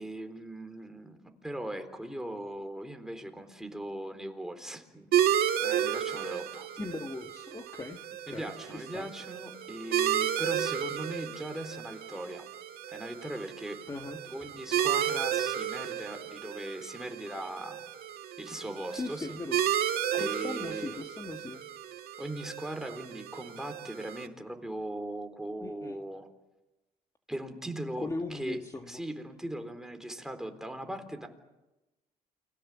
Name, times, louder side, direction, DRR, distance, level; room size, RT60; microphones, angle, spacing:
voice 1, 0.0-5.1 5.6-6.7 8.3-12.5 12.9-13.8 14.3-17.8 18.4-19.4 20.2-21.0 22.2-26.3 27.3-28.6 28.8-31.3, right 1 dB, 5° right, 5 dB, 3.9 m, -39 dB
sound 1, 5.1-24.3, right 10 dB, 65° right, 2.2 m, -33 dB
voice 2, 6.7-8.0 8.3-9.1 13.9-14.2 19.0-19.8 20.1-21.6 25.6-26.0 28.0-29.0, left 2 dB, 20° left, 4 dB, 1.8 m, -39 dB
29.0 x 23.0 x 7.5 m, 1.0 s
cardioid pair, 110°, 17 cm